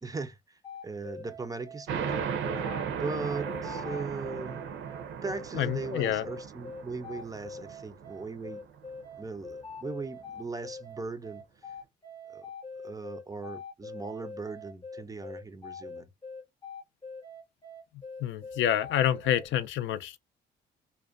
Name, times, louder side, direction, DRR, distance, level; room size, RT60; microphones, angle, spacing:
voice 1, 0.0-2.3 2.9-4.7 5.2-8.6 9.2-11.4 12.3-12.5 12.8-16.1, right 4 dB, 20° right, 0.4 m, -38 dB
sound 1, 0.6-19.5, left 3 dB, 25° left, 0.7 m, -43 dB
sound 2, 1.9-9.0, right 7 dB, 85° right, 0.6 m, -36 dB
voice 2, 5.5-6.2 18.2-20.2, left 10 dB, 75° left, 0.4 m, -28 dB
2.4 x 2.1 x 2.4 m
cardioid pair, 90°, 20 cm